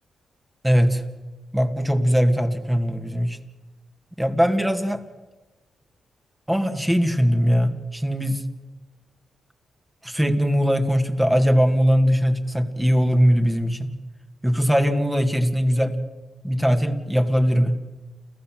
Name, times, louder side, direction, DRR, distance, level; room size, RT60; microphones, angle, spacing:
voice 1, 0.6-1.0 1.5-3.4 4.2-5.0 6.5-8.4 10.0-13.9 14.4-16.0 16.4-17.7, equal, 10° right, 7 dB, 2.4 m, -20 dB
29.0 x 14.5 x 7.7 m, 1.2 s
cardioid pair, 70°, 0 cm